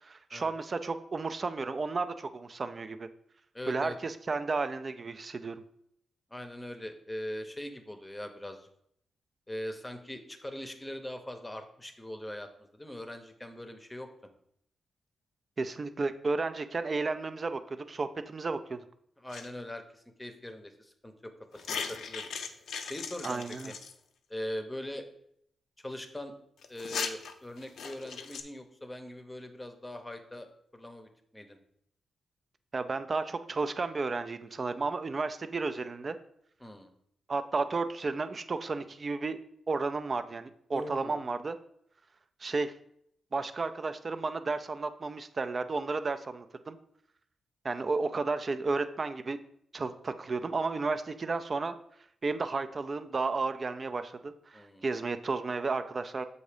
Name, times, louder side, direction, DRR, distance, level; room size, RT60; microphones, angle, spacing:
voice 1, 0.0-3.1 3.7-5.6 15.6-18.8 23.2-23.7 32.7-36.2 37.3-39.4 39.7-41.6 42.4-42.7 43.3-46.8 47.6-49.4 49.7-51.7 52.2-56.2, right 3 dB, 40° right, 10 dB, 0.4 m, -33 dB
voice 2, 3.5-4.0 6.3-8.7 9.5-14.1 19.2-22.3 22.8-23.7 24.3-25.0 25.8-26.3 26.7-30.5 30.7-31.6 36.6-36.9 40.7-41.2 54.5-54.9, left 1 dB, 10° left, 7 dB, 0.7 m, -41 dB
sound 1, 19.3-19.5 21.5-23.9 26.6-28.4, left 6 dB, 80° left, 0.5 m, -38 dB
7.0 x 2.7 x 4.9 m, 0.72 s
cardioid pair, 80°, 0 cm